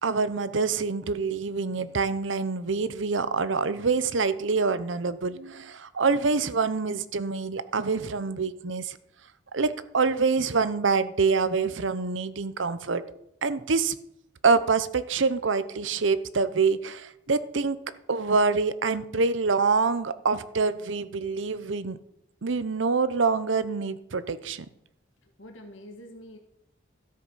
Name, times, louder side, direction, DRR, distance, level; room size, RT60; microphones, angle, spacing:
voice 1, 0.0-9.0 9.5-13.0 13.4-14.0 14.4-17.8 18.1-22.0 22.4-24.7, right 4 dB, 75° right, 14 dB, 0.8 m, -26 dB
voice 2, 25.2-26.4, equal, 80° left, 3 dB, 1.6 m, -46 dB
13.0 x 7.7 x 5.6 m, 0.77 s
head